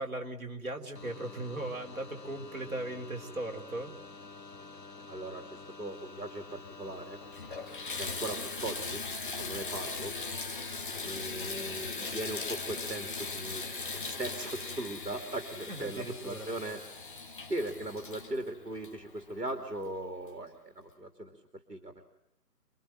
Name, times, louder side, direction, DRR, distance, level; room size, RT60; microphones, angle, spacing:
voice 1, 0.0-3.9 15.7-16.5, right 1 dB, 55° right, 3 dB, 3.7 m, -38 dB
sound 1, 0.9-8.8, left 3 dB, 80° left, 1.5 m, -49 dB
voice 2, 5.1-7.2 8.0-9.0 9.4-10.2 11.0-13.6 13.9-16.8 17.5-22.1, right 1 dB, 80° right, 5 dB, 3.0 m, -39 dB
Water tap faucet / Bathtub (filling or washing), 6.6-6.7 7.2-19.6 20.3-20.4 20.9-21.0, left 4 dB, 30° left, 2.0 m, -39 dB
28.5 x 21.5 x 9.0 m, 0.80 s
figure-of-eight pair, 160°, 48 cm